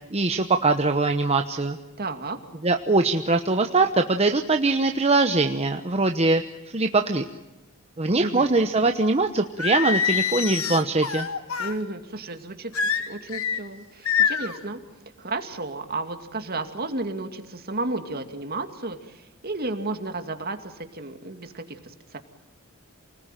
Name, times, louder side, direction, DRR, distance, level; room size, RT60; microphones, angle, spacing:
voice 1, 0.1-1.8 2.6-6.4 6.7-7.3 8.0-11.3, right 3 dB, 30° right, 5 dB, 1.0 m, -22 dB
voice 2, 2.0-2.4 8.2-8.5 11.6-14.8 15.2-22.2, right 2 dB, 50° right, 7 dB, 2.3 m, -33 dB
Singing, 9.6-11.8 12.7-13.6 14.0-14.6, left 7 dB, 85° left, 1.8 m, -25 dB
28.5 x 20.0 x 9.1 m, 1.0 s
head